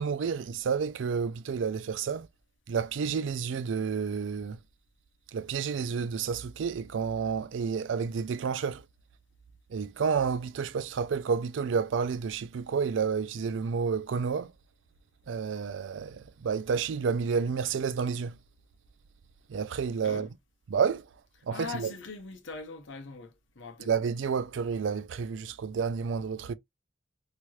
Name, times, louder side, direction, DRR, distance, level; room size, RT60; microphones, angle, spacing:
voice 1, 0.0-2.3 2.7-4.6 5.3-8.8 9.7-14.5 15.3-18.4 19.5-20.3 20.7-21.1 21.5-21.9 23.9-26.5, right 6 dB, 75° right, 0.4 m, -30 dB
voice 2, 21.5-23.9, left 4 dB, 75° left, 0.8 m, -41 dB
3.1 x 2.9 x 2.3 m
head